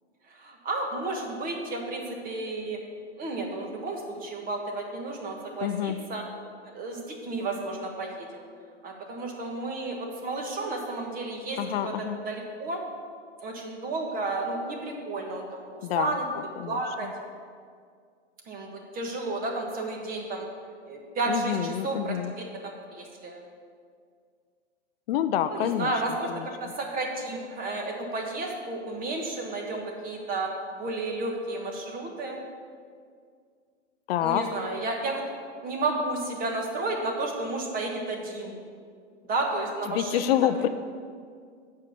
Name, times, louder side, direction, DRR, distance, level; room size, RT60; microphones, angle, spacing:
voice 1, 0.3-2.8 3.2-6.2 6.6-8.5 8.8-12.8 13.4-16.2 16.6-17.1 18.5-20.5 20.8-23.4 25.5-32.4 34.2-35.2 35.6-38.6 39.3-40.5, right 2 dB, 25° right, 2 dB, 1.5 m, -32 dB
voice 2, 5.6-6.0 11.6-12.2 15.8-16.2 16.6-17.1 21.3-22.3 25.1-25.9 26.3-26.5 34.1-34.4 39.9-40.7, left 10 dB, 55° left, 10 dB, 0.5 m, -27 dB
8.1 x 5.6 x 6.9 m, 2.1 s
hypercardioid pair, 130°, 35 cm